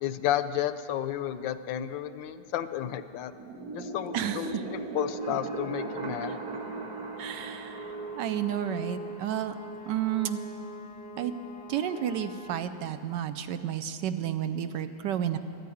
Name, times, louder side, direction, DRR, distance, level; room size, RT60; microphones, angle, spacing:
voice 1, 0.0-3.3 3.7-6.4, left 11 dB, 80° left, 12 dB, 1.3 m, -32 dB
sound 1, 3.4-9.9, right 3 dB, 55° right, 1.9 m, -38 dB
voice 2, 4.1-4.6 7.2-9.5 9.9-10.4 11.2-11.3 11.7-15.4, right 10 dB, 75° right, 11 dB, 1.2 m, -31 dB
sound 2, 5.2-12.6, right 1 dB, 15° left, 0.7 m, -44 dB
13.5 x 9.5 x 9.1 m, 2.8 s
omnidirectional pair, 2.1 m